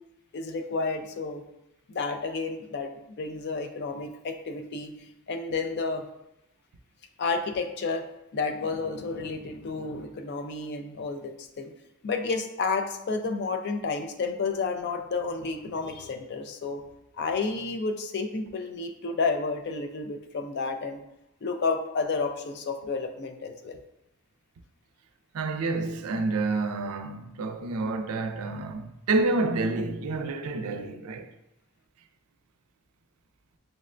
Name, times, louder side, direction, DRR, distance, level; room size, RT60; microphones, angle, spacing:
voice 1, 0.3-1.4 1.9-4.9 5.3-6.0 7.2-8.0 8.3-11.7 12.0-16.8 17.2-21.0 21.4-23.8, left 4 dB, 50° left, 0.4 m, -31 dB
voice 2, 25.3-31.3, right 3 dB, 90° right, 0.4 m, -29 dB
6.3 x 2.1 x 2.5 m
head